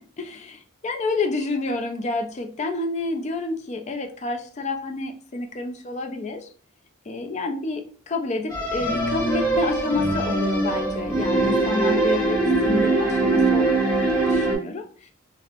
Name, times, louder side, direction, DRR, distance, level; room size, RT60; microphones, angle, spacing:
voice 1, 0.0-6.5 7.1-14.8, left 3 dB, 35° left, 5 dB, 0.4 m, -29 dB
sound 1, 8.5-14.5, right 2 dB, 15° left, 1.1 m, -22 dB
3.0 x 2.0 x 2.4 m, 0.43 s
head